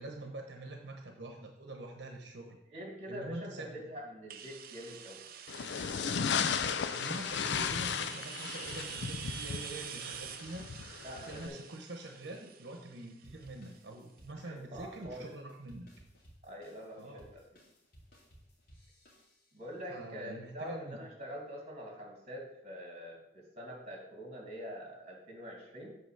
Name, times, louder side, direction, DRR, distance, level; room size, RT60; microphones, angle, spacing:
voice 1, 0.0-2.6 3.1-3.8 6.0-6.4 6.9-10.7 11.3-15.9 17.0-17.3 19.9-21.0, right 2 dB, 80° right, 2 dB, 1.0 m, -45 dB
voice 2, 2.7-5.2 11.0-11.6 14.4-15.3 16.4-17.4 19.5-25.9, equal, 40° right, -1 dB, 2.6 m, -45 dB
sound 1, 4.3-13.9, right 8 dB, 55° right, 0.6 m, -47 dB
sound 2, 5.5-11.5, left 7 dB, 80° left, 0.5 m, -35 dB
sound 3, 13.2-19.7, equal, 60° left, 2.3 m, -60 dB
8.1 x 4.1 x 6.5 m, 0.83 s
head